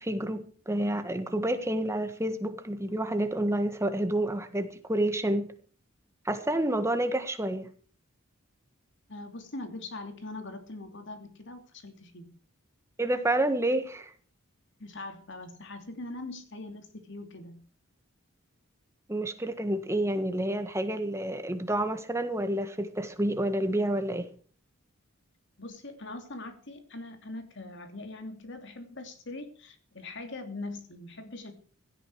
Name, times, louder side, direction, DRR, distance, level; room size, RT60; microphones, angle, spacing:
voice 1, 0.0-5.5 6.2-7.7 13.0-14.1 19.1-24.3, right 1 dB, 15° right, 1.6 m, -29 dB
voice 2, 9.1-12.4 14.8-17.6 25.6-31.5, left 2 dB, 60° left, 2.8 m, -42 dB
16.5 x 13.0 x 4.7 m
head